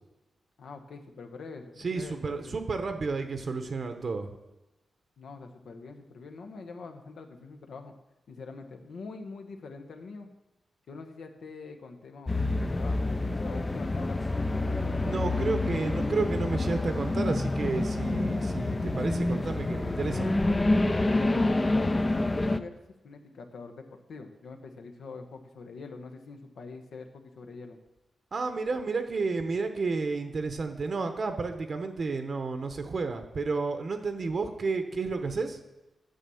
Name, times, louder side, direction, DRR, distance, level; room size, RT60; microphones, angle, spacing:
voice 1, 0.6-2.6 5.2-8.0 8.3-10.3 10.9-14.8 21.2-22.8 23.0-27.8, left 4 dB, 75° left, 5 dB, 1.1 m, -44 dB
voice 2, 1.8-4.3 15.0-20.3 28.3-35.6, right 4 dB, 45° right, 7 dB, 0.9 m, -31 dB
sound 1, 12.3-22.6, left 2 dB, 20° left, 0.5 m, -27 dB
9.2 x 7.0 x 7.0 m, 1.0 s
wide cardioid pair, 120°, 0 cm